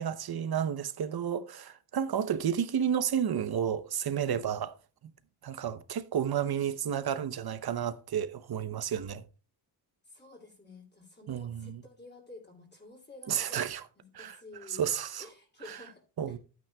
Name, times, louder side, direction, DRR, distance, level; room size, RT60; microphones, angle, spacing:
voice 1, 0.0-4.8 5.4-9.2 11.3-11.8 13.3-13.9 14.1-14.4 14.7-15.2 15.7-15.8 16.2-16.4, right 8 dB, 55° right, 0.9 m, -31 dB
voice 2, 10.0-13.7 14.0-16.4, left 2 dB, 25° left, 2.5 m, -51 dB
11.5 x 9.3 x 2.3 m
cardioid pair, 100°, 44 cm